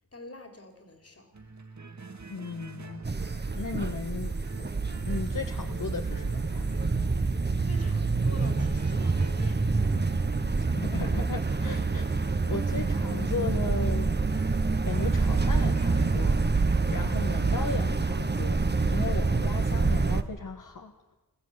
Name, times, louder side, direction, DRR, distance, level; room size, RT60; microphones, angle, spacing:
voice 1, 0.1-1.3 7.6-9.8 10.1-10.4, left 2 dB, 45° left, 6 dB, 3.6 m, -47 dB
sound 1, 1.3-17.5, right 3 dB, 55° right, 2.1 m, -44 dB
voice 2, 2.3-3.0 3.5-4.3 4.9-6.7 10.6-14.1 14.8-16.4 16.9-18.6 18.9-20.9, left 4 dB, 65° left, 4 dB, 1.6 m, -36 dB
sound 2, 3.0-20.2, right 3 dB, 30° right, 1.1 m, -27 dB
21.5 x 15.5 x 9.8 m, 1.1 s
wide cardioid pair, 85°, 35 cm